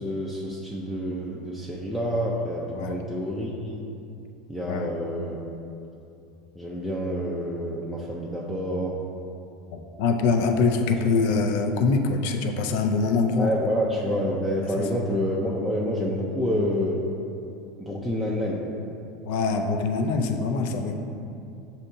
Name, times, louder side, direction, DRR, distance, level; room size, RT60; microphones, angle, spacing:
voice 1, 0.0-3.8 4.5-5.4 6.6-9.0 13.4-17.0 17.8-18.7, equal, ahead, -6 dB, 0.4 m, -28 dB
voice 2, 9.7-13.5 14.8-14.9 19.3-20.9, left 4 dB, 70° left, 5 dB, 0.4 m, -24 dB
6.5 x 2.8 x 2.6 m, 2.6 s
supercardioid pair, 120°, 0 cm